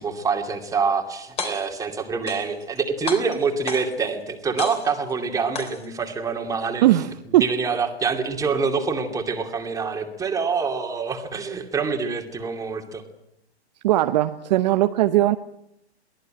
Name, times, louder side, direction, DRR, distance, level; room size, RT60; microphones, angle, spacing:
voice 1, 0.0-6.8 7.3-13.0, right 5 dB, 10° right, 4 dB, 2.5 m, -26 dB
sound 1, 1.2-1.8 2.3-2.8 3.1-4.1 4.6-5.1 5.5-6.1, left 4 dB, 20° left, 3.5 m, -32 dB
voice 2, 6.8-7.5 13.8-15.4, right 15 dB, 40° right, 9 dB, 0.9 m, -19 dB
23.0 x 18.0 x 9.0 m, 0.80 s
hypercardioid pair, 135°, 34 cm